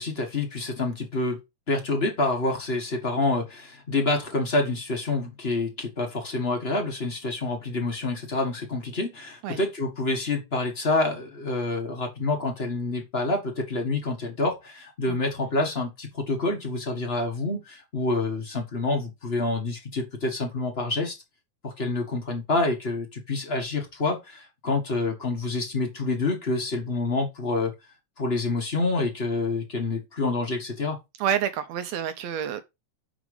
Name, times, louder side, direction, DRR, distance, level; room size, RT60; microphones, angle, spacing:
voice 1, 0.0-1.4 1.7-21.2 21.6-27.7 28.2-31.0, left 2 dB, 35° left, 1.0 m, -27 dB
voice 2, 31.2-32.6, right 9 dB, 75° right, 1.7 m, -28 dB
6.2 x 4.9 x 4.8 m
omnidirectional pair, 3.5 m